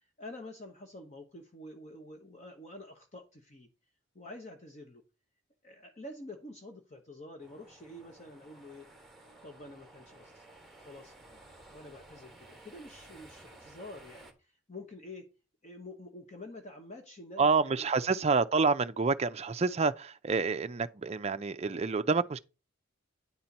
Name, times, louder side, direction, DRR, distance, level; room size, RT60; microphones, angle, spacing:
voice 1, 0.0-3.7 4.1-5.0 5.6-8.9 9.4-10.5 10.8-15.3 15.6-17.9, left 1 dB, 35° left, 0.9 m, -48 dB
sound 1, 7.4-14.3, right 2 dB, ahead, 1.2 m, -55 dB
voice 2, 17.4-22.4, right 4 dB, 30° right, 0.4 m, -28 dB
9.6 x 4.3 x 5.3 m
head